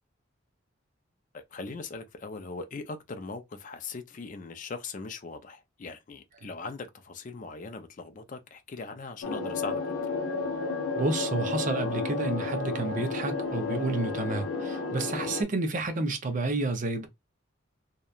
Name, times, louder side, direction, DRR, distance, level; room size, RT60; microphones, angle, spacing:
voice 1, 1.3-9.8, left 4 dB, 40° left, 0.4 m, -40 dB
sound 1, 9.2-15.4, left 4 dB, 90° left, 0.6 m, -32 dB
voice 2, 10.9-17.1, right 2 dB, 40° right, 0.5 m, -30 dB
2.8 x 2.1 x 2.3 m
head